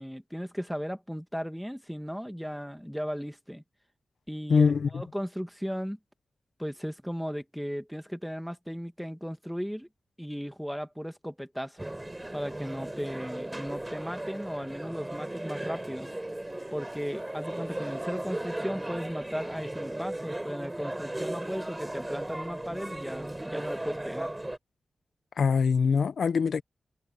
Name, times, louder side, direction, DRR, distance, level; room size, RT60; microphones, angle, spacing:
voice 1, 0.0-3.6 4.3-6.0 6.6-9.9 10.2-11.9 12.3-16.1 16.7-24.3, equal, ahead, 2.0 m, -36 dB
voice 2, 4.5-5.0 25.4-26.6, left 5 dB, 80° left, 0.9 m, -23 dB
sound 1, 11.8-24.6, right 1 dB, 15° right, 5.5 m, -36 dB
cardioid pair, 70°, 0 cm